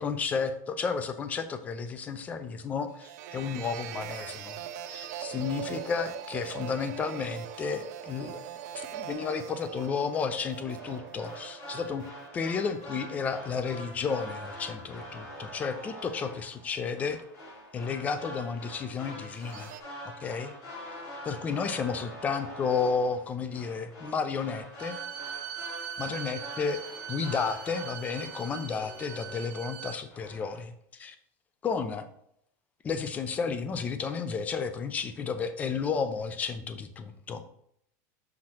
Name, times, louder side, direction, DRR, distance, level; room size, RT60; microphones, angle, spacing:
voice 1, 0.0-4.6 4.9-8.4 8.7-12.1 12.3-17.2 17.7-19.7 20.2-20.5 21.3-25.0 26.0-26.8 27.1-31.2 31.6-32.1 32.8-37.4, left 5 dB, 15° left, 11 dB, 0.4 m, -32 dB
sound 1, 2.9-14.4 14.7-15.1 19.2-19.8, right 10 dB, 70° right, 0.5 m, -42 dB
sound 2, 10.7-29.8 30.1-30.6, equal, 45° left, 2.5 m, -45 dB
Bowed string instrument, 24.8-30.0, right 9 dB, 85° right, 1.1 m, -41 dB
6.2 x 5.8 x 2.9 m, 0.72 s
supercardioid pair, 165°, 9 cm